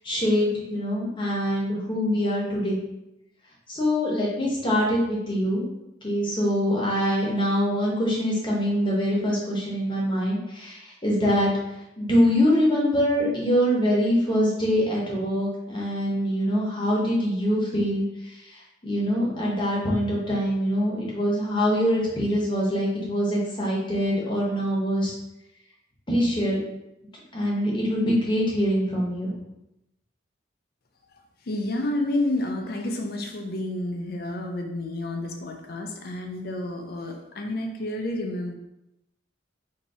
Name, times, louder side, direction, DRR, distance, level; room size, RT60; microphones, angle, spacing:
voice 1, 0.0-2.8 3.7-5.6 6.0-25.2 26.1-26.6 27.3-29.3, equal, 25° left, -4 dB, 0.9 m, -24 dB
voice 2, 31.4-38.5, left 1 dB, 50° left, 3 dB, 0.5 m, -30 dB
2.9 x 2.7 x 4.2 m, 0.88 s
head